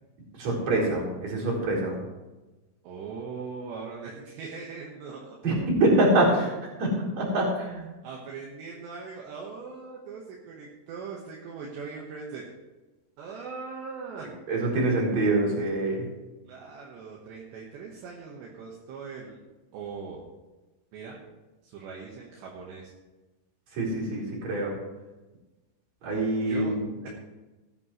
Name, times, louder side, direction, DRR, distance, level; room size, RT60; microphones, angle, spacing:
voice 1, 0.3-2.0 5.4-6.5 6.8-7.9 14.5-16.1 23.7-24.8 26.0-27.1, right 1 dB, 35° right, -5 dB, 5.1 m, -25 dB
voice 2, 2.8-5.4 8.0-12.4 13.2-14.3 16.4-19.4 19.7-20.2 20.9-21.2 21.6-22.9 26.5-26.8, right 5 dB, 70° right, -2 dB, 3.3 m, -40 dB
16.5 x 11.0 x 3.2 m, 1.1 s
omnidirectional pair, 5.8 m